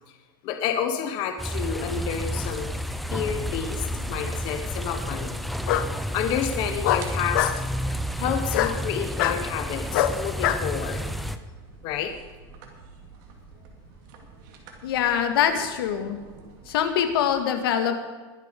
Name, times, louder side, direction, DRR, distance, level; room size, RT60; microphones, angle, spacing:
voice 1, 0.4-2.8 3.1-5.4 6.1-7.5 7.9-11.0 11.8-12.1, left 8 dB, 40° left, 6 dB, 1.1 m, -30 dB
sound 1, 1.4-11.4, equal, ahead, 0.4 m, -31 dB
sound 2, 1.9-17.3, right 5 dB, 55° right, 2.6 m, -47 dB
Bark, 3.5-4.1 5.7-5.9 6.8-7.6 8.5-8.8 9.2-9.4 9.9-10.6, left 12 dB, 65° left, 1.0 m, -24 dB
voice 2, 14.8-16.2 16.7-18.0, left 9 dB, 85° left, 7 dB, 2.0 m, -24 dB
21.5 x 8.0 x 5.2 m, 1.3 s
supercardioid pair, 170°, 12 cm